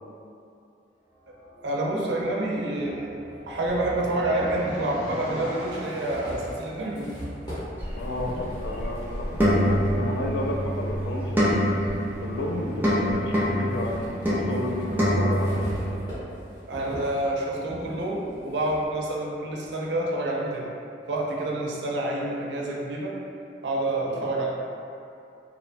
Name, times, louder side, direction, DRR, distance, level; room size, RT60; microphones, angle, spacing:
sound 1, 1.1-6.6, equal, 55° left, 0.9 m, -40 dB
voice 1, 1.6-3.1 3.5-7.2 16.7-20.7 21.1-23.2 23.6-24.5, right 1 dB, 75° right, -2 dB, 0.4 m, -28 dB
sound 2, 3.7-3.8 4.9-5.0 5.4-10.6 11.1-12.3 12.7-18.9, equal, 25° left, 0.8 m, -41 dB
sound 3, 7.8-16.0, equal, 10° right, 0.4 m, -26 dB
voice 2, 7.9-11.5 12.2-14.0 14.3-15.8 21.4-21.6 24.0-24.3, left 1 dB, 70° left, 0 dB, 0.3 m, -32 dB
2.7 x 2.1 x 2.5 m, 2.6 s
head